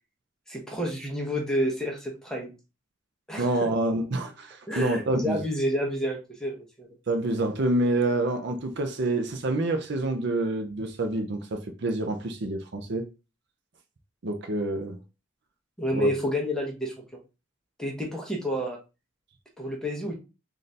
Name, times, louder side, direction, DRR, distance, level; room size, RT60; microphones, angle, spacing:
voice 1, 0.5-2.5 3.3-3.7 4.7-6.9 15.8-16.9 17.8-18.8 19.6-20.1, equal, 5° left, 0.9 m, -29 dB
voice 2, 3.4-5.4 7.1-13.1 14.2-15.0 15.9-16.1, right 2 dB, 55° right, 0.5 m, -27 dB
4.0 x 2.6 x 3.3 m
head